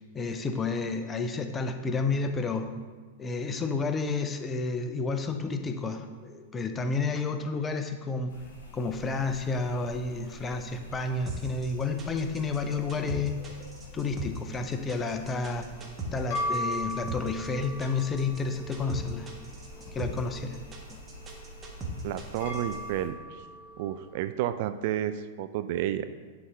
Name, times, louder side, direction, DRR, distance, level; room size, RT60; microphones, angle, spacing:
voice 1, 0.1-2.7 3.2-8.3 8.7-13.4 13.9-15.7 16.1-19.3 19.8-20.6 20.9-21.0, left 4 dB, 20° left, 7 dB, 0.5 m, -31 dB
sound 1, 8.3-23.1, equal, 65° left, 1.9 m, -48 dB
sound 2, 11.3-22.8, right 2 dB, 20° right, 1.2 m, -38 dB
sound 3, 15.8-24.2, left 1 dB, 45° left, 2.1 m, -39 dB
voice 2, 22.0-23.4 23.8-26.1, right 11 dB, 45° right, 10 dB, 0.3 m, -31 dB
10.5 x 4.0 x 3.4 m, 1.5 s
figure-of-eight pair, 95°, 0 cm